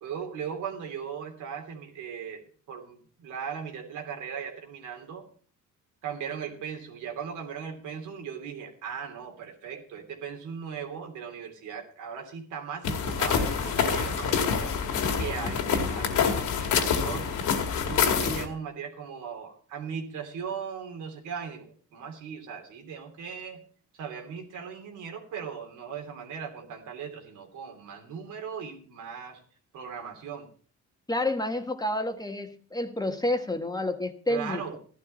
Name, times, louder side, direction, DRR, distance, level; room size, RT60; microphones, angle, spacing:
voice 1, 0.0-5.3 6.0-14.8 15.2-17.4 17.8-23.6 24.0-29.4 29.7-30.5 34.3-34.8, right 7 dB, 90° right, 3 dB, 3.1 m, -38 dB
sound 1, 12.8-18.5, left 6 dB, 80° left, 2.2 m, -26 dB
voice 2, 31.1-34.8, left 1 dB, 15° left, 6 dB, 1.5 m, -29 dB
14.5 x 12.0 x 4.1 m, 0.43 s
cardioid pair, 90°, 30 cm